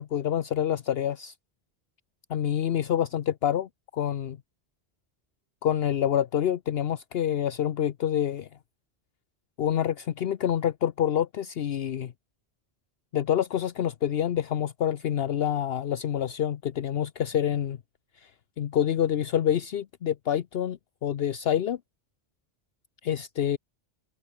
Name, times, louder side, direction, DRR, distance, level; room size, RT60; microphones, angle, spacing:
voice 1, 0.0-1.3 2.3-4.4 5.6-8.5 9.6-12.1 13.1-17.8 18.2-18.3 18.6-21.8 23.0-23.6, left 10 dB, 65° left, 0.9 m, -27 dB
omnidirectional pair, 1.1 m